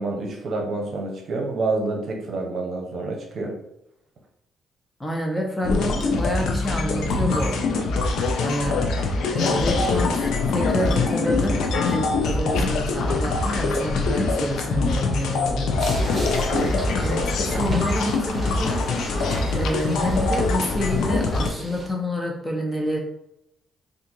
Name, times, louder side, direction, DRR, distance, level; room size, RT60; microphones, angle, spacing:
voice 1, 0.0-3.5 16.5-16.8, right 3 dB, 55° right, 0 dB, 0.8 m, -28 dB
voice 2, 5.0-7.9 8.4-8.8 9.3-11.6 11.8-16.1 17.0-17.2 17.6-18.8 19.5-23.0, equal, 10° left, 0 dB, 0.8 m, -28 dB
sound 1, 5.6-21.5, left 3 dB, 80° left, 0.5 m, -23 dB
sound 2, 15.8-21.9, right 1 dB, 20° right, 1.4 m, -35 dB
3.5 x 2.5 x 3.0 m, 0.80 s
cardioid pair, 90°, 0 cm